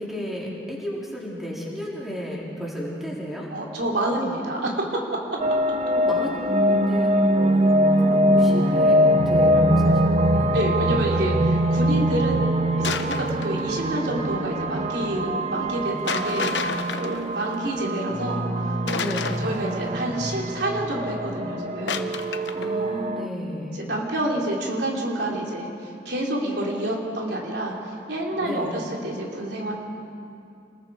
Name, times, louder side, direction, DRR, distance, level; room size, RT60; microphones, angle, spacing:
voice 1, 0.0-3.5 6.0-7.1 7.4-10.5 19.0-19.4 22.5-23.8 28.4-28.8, equal, ahead, -5 dB, 3.9 m, -33 dB
voice 2, 3.5-4.8 10.5-12.5 12.8-18.8 19.2-22.1 22.8-22.9 23.7-29.7, right 1 dB, 70° right, -2 dB, 3.4 m, -28 dB
sound 1, 5.4-23.3, equal, 35° right, 0.7 m, -23 dB
sound 2, 12.8-13.6 16.1-17.7 18.9-19.8 21.9-22.7, left 5 dB, 85° left, 1.1 m, -30 dB
29.0 x 21.0 x 4.9 m, 2.6 s
head